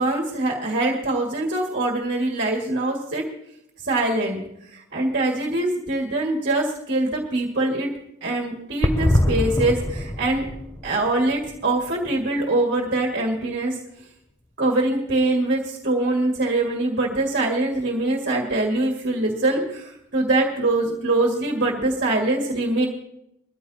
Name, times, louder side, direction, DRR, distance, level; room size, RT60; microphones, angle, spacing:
voice 1, 0.0-3.2 3.8-4.4 4.7-7.9 8.2-10.4 10.8-13.8 14.6-22.9, right 2 dB, 50° right, -2 dB, 2.0 m, -23 dB
sound 1, 8.8-12.6 12.9-13.0 13.1-13.2, left 1 dB, 15° left, 0.5 m, -24 dB
22.0 x 14.0 x 2.8 m, 0.80 s
head